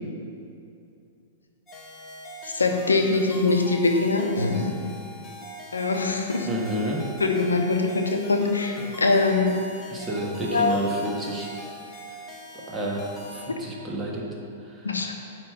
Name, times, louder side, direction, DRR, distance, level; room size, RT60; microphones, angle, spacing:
sound 1, 1.7-13.5, equal, 20° left, 1.2 m, -42 dB
voice 1, 2.4-4.9 5.7-6.5 7.2-9.5 10.5-10.7 14.8-15.1, left 3 dB, 85° left, 3 dB, 0.7 m, -23 dB
voice 2, 6.4-7.1 9.9-11.7 12.7-14.3 14.7-14.9, right 1 dB, 15° right, -3 dB, 1.4 m, -30 dB
9.0 x 3.2 x 6.6 m, 2.6 s
figure-of-eight pair, 105°, 0 cm